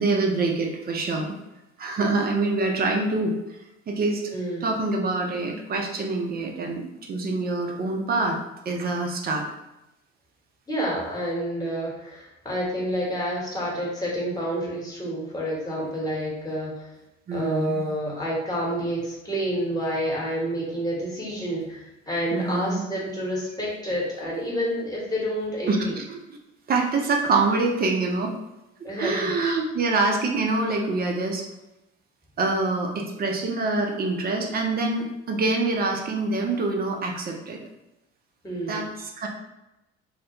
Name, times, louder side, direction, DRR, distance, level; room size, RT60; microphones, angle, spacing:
voice 1, 0.0-1.3 1.8-3.4 3.9-4.3 4.6-8.4 8.7-9.5 17.3-17.8 22.3-22.8 25.7-26.2 26.7-28.3 29.0-31.4 32.4-37.6 38.7-39.3, right 3 dB, 25° right, 1 dB, 0.5 m, -25 dB
voice 2, 4.3-4.6 10.7-16.9 17.3-26.0 28.8-29.3 38.4-38.9, equal, 10° left, -5 dB, 1.1 m, -29 dB
2.3 x 2.1 x 2.9 m, 0.93 s
figure-of-eight pair, 50°, 34 cm